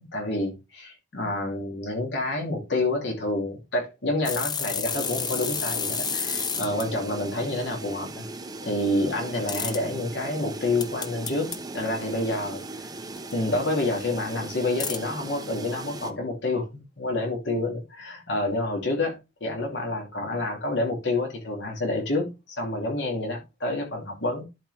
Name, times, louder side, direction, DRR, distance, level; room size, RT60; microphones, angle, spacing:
voice 1, 0.0-8.2 8.6-12.9 13.3-24.4, left 2 dB, 70° left, 2.6 m, -28 dB
sound 1, 4.2-6.9 9.5-9.8 10.8-11.6 13.2-13.3 14.8-15.0, left 6 dB, 25° left, 0.7 m, -30 dB
sound 2, 4.9-16.1, right 2 dB, 20° right, 0.8 m, -38 dB
12.0 x 4.6 x 3.4 m
head